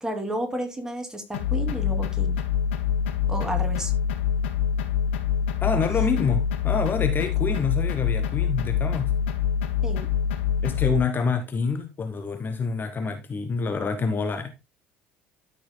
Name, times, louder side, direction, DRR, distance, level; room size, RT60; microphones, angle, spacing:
voice 1, 0.0-2.4 3.3-3.9 9.8-10.1, right 1 dB, 10° right, 2.6 m, -31 dB
sound 1, 1.3-11.0, left 8 dB, 75° left, 1.1 m, -25 dB
voice 2, 5.6-9.1 10.6-14.5, left 5 dB, 30° left, 1.0 m, -27 dB
13.0 x 6.1 x 2.2 m
hypercardioid pair, 65°, 6 cm